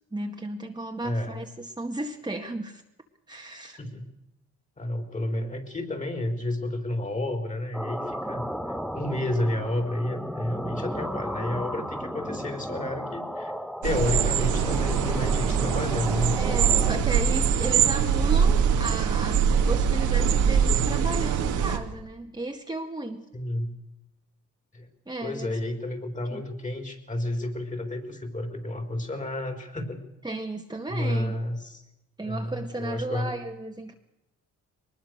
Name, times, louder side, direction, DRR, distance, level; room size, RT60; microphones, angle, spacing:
voice 1, 0.1-2.8 3.3-3.8 16.4-23.3 25.1-25.6 26.3-26.4 30.2-31.3 32.2-33.9, right 2 dB, 15° right, 2 dB, 2.0 m, -34 dB
voice 2, 1.0-1.4 3.8-4.1 4.8-13.5 13.8-16.4 23.3-23.8 24.7-24.9 25.2-30.0 30.9-31.8 32.2-33.3, left 1 dB, 25° left, 6 dB, 4.4 m, -31 dB
sound 1, 7.7-17.0, equal, ahead, 1.1 m, -34 dB
sound 2, 13.8-21.8, right 7 dB, 80° right, 2.4 m, -23 dB
22.5 x 20.5 x 6.6 m, 0.90 s
cardioid pair, 90°, 30 cm